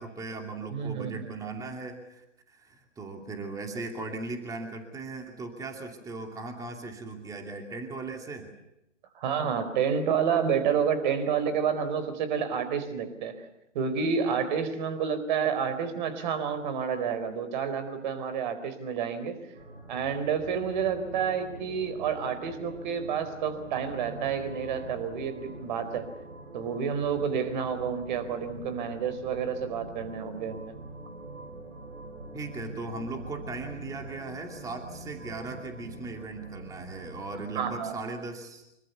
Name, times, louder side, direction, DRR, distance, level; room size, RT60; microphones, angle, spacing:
voice 1, 0.0-8.5 32.3-38.6, right 3 dB, 10° right, 4 dB, 2.6 m, -38 dB
voice 2, 0.7-1.2 9.1-13.3 13.7-19.4 19.9-26.1 26.5-30.8 37.5-38.1, right 7 dB, 40° right, 12 dB, 4.5 m, -29 dB
sound 1, 19.5-37.8, right 2 dB, 75° right, 7.9 m, -44 dB
26.0 x 24.5 x 7.0 m, 0.85 s
figure-of-eight pair, 140°, 38 cm